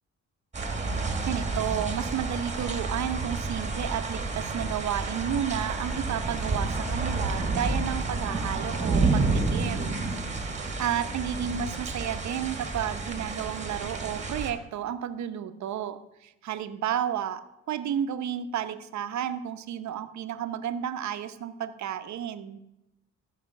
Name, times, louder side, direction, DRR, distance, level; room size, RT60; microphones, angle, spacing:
sound 1, 0.5-14.5, right 3 dB, 25° right, 1.4 m, -30 dB
voice 1, 1.2-10.0 10.3-17.4 17.7-22.6, right 9 dB, 65° right, 10 dB, 0.9 m, -32 dB
14.0 x 5.1 x 6.0 m, 0.89 s
cardioid pair, 90°, 30 cm